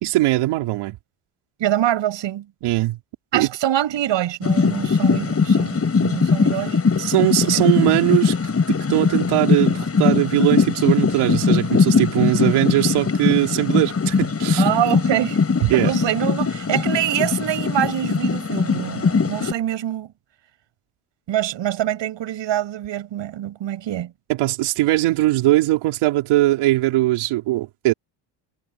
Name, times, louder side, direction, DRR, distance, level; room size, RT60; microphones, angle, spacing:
voice 1, 0.0-1.0 2.6-3.0 3.3-3.5 7.0-8.4 8.7-14.7 15.7-15.9 24.3-27.9, right 17 dB, 80° right, 4.1 m, -20 dB
voice 2, 1.6-2.5 3.3-6.8 7.5-7.6 14.6-15.4 15.7-20.1 21.3-24.1, right 12 dB, 60° right, 7.1 m, -25 dB
sound 1, 4.4-19.5, left 5 dB, 30° left, 7.1 m, -20 dB
cardioid pair, 105°, 50 cm